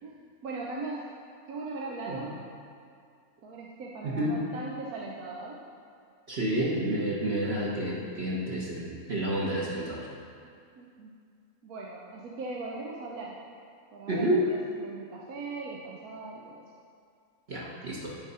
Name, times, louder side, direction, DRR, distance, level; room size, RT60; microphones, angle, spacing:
voice 1, 0.0-1.1 1.5-2.4 3.4-5.6 10.8-11.2 11.6-13.4 13.9-16.6, right 3 dB, 85° right, -3 dB, 1.3 m, -39 dB
voice 2, 4.0-4.4 6.3-10.1 14.1-14.4 17.5-18.2, right 1 dB, 50° right, -6 dB, 1.2 m, -29 dB
9.5 x 4.7 x 5.5 m, 2.3 s
omnidirectional pair, 1.5 m